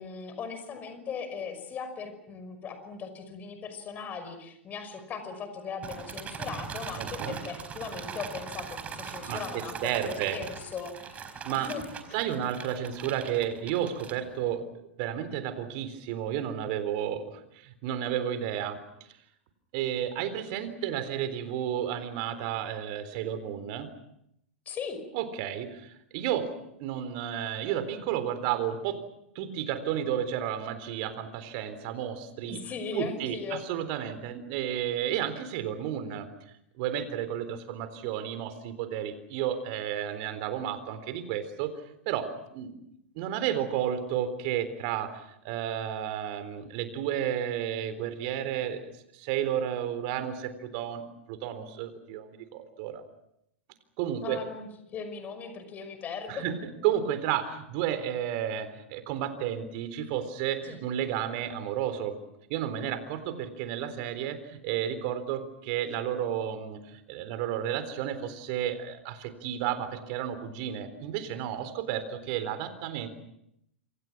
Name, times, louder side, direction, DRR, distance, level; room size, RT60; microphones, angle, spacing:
voice 1, 0.0-11.8 12.1-12.2 24.7-25.0 32.5-33.6 54.2-56.5 60.6-60.8, left 5 dB, 25° left, 9 dB, 5.6 m, -39 dB
sound 1, 5.8-14.5, right 6 dB, 20° right, 4.4 m, -41 dB
voice 2, 7.0-7.4 9.3-10.4 11.4-11.7 12.1-14.6 15.0-19.1 19.7-23.9 25.1-26.5 26.8-29.0 29.4-32.6 32.9-36.3 36.8-41.7 42.1-42.8 43.2-53.0 54.0-54.4 56.3-56.6 56.8-62.2 62.5-73.1, right 10 dB, 45° right, 11 dB, 3.9 m, -32 dB
27.5 x 26.0 x 6.1 m, 0.75 s
figure-of-eight pair, 100°, 6 cm